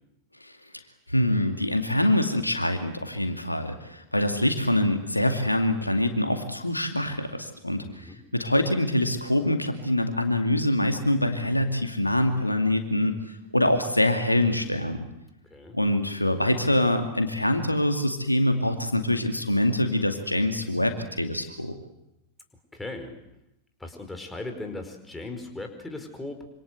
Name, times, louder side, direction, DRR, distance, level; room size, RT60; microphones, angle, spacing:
voice 1, 1.1-13.1 13.5-15.0 15.7-21.7, left 1 dB, 85° left, 6 dB, 2.3 m, -24 dB
voice 2, 7.7-8.2 15.5-15.8 17.4-17.5 22.7-23.2 23.8-26.6, left 2 dB, 10° left, 5 dB, 4.8 m, -38 dB
26.5 x 26.0 x 8.0 m, 0.89 s
figure-of-eight pair, 90°, 0 cm